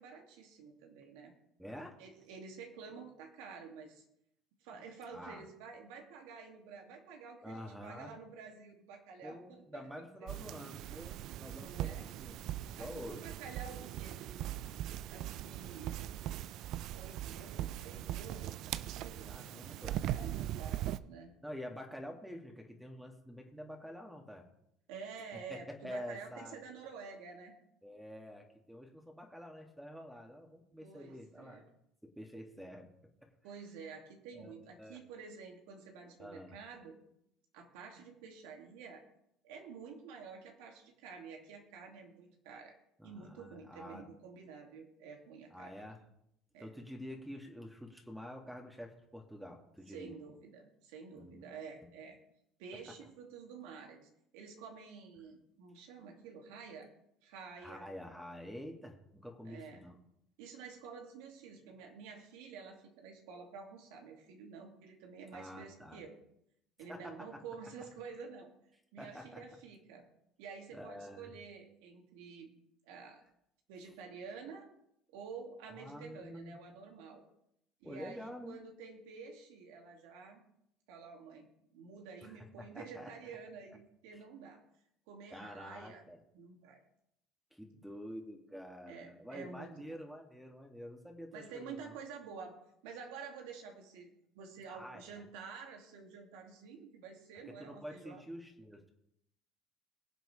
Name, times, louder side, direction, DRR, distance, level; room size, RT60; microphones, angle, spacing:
voice 1, 0.0-1.3 2.0-4.0 4.6-9.9 10.2-10.3 11.5-12.1 12.8-14.5 15.1-16.1 16.9-19.3 20.1-21.3 24.9-27.6 30.8-31.6 33.4-37.0 37.5-39.0 39.4-42.7 43.0-45.8 46.5-46.7 49.9-52.2 52.6-56.9 57.2-57.9 59.4-59.8 60.4-66.2 66.8-68.5 68.9-70.1 70.4-72.5 72.8-73.2 73.7-74.7 75.1-77.2 77.8-80.4 80.9-84.6 85.1-86.0 86.3-86.8 88.9-90.0 91.3-94.1 94.3-98.2, right 5 dB, 80° right, 2 dB, 2.3 m, -50 dB
voice 2, 1.6-2.0 5.1-5.5 7.4-8.1 9.2-12.4 12.7-13.2 19.2-20.1 21.4-24.5 25.3-26.7 27.8-31.6 32.0-32.9 33.2-33.3 34.4-34.5 34.8-35.0 36.2-36.6 43.0-44.0 45.5-46.0 46.6-50.2 51.2-51.5 51.8-51.9 52.7-52.8 57.6-60.0 65.3-66.1 66.9-67.4 69.0-69.4 70.7-71.3 75.8-76.6 77.8-78.6 82.2-83.1 85.3-86.2 87.5-91.9 94.7-95.2 97.5-98.9, equal, 5° right, 2 dB, 2.3 m, -48 dB
sound 1, 10.3-21.0, right 13 dB, 65° right, 0.4 m, -40 dB
22.0 x 7.7 x 3.3 m, 0.78 s
hypercardioid pair, 80°, 0 cm